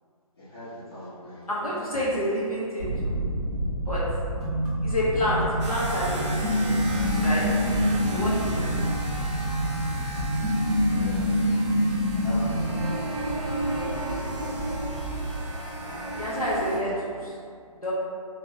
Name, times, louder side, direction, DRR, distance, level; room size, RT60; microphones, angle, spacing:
voice 1, 0.4-1.5 7.6-8.1 8.5-8.7 10.9-11.7 12.1-13.0, left 1 dB, 40° left, -12 dB, 0.9 m, -41 dB
voice 2, 1.5-3.1 3.9-4.0 4.8-7.4 8.1-8.7 16.1-17.3 17.8-17.9, equal, 70° left, -8 dB, 0.7 m, -29 dB
sound 1, 2.8-15.2, right 1 dB, 30° right, 0.8 m, -32 dB
sound 2, 4.4-12.9, equal, 5° left, 0.3 m, -26 dB
sound 3, 5.6-16.8, right 2 dB, 50° right, 0.5 m, -34 dB
3.3 x 2.2 x 2.8 m, 2.3 s
figure-of-eight pair, 140°, 19 cm